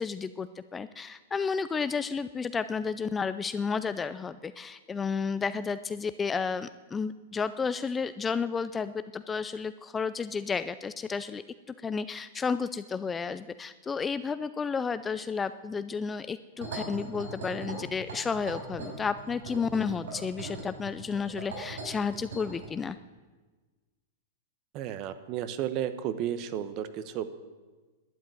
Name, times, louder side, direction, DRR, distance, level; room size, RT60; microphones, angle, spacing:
voice 1, 0.0-11.4 11.8-23.0, left 5 dB, 15° left, 13 dB, 0.4 m, -32 dB
sound 1, 16.6-22.7, right 3 dB, 90° right, 5.3 m, -40 dB
voice 2, 24.7-27.3, right 10 dB, 35° right, 12 dB, 1.0 m, -33 dB
12.0 x 9.4 x 9.2 m, 1.3 s
supercardioid pair, 150°, 0 cm